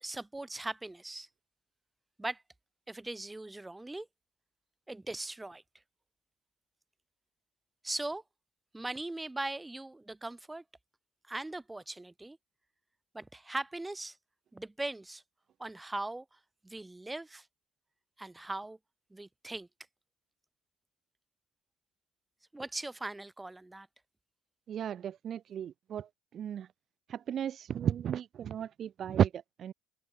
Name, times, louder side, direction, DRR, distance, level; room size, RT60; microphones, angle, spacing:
voice 1, 0.0-1.3 2.2-2.4 2.9-4.1 4.9-5.6 7.8-8.2 8.7-10.6 11.3-12.4 13.1-14.2 14.5-15.2 15.6-16.2 16.6-17.4 18.2-18.8 19.1-19.7 22.5-23.9, right 2 dB, 15° right, 1.8 m, -39 dB
voice 2, 24.7-26.1 26.3-26.7 27.1-29.7, right 9 dB, 50° right, 0.7 m, -33 dB
open air
hypercardioid pair, 60°, 0 cm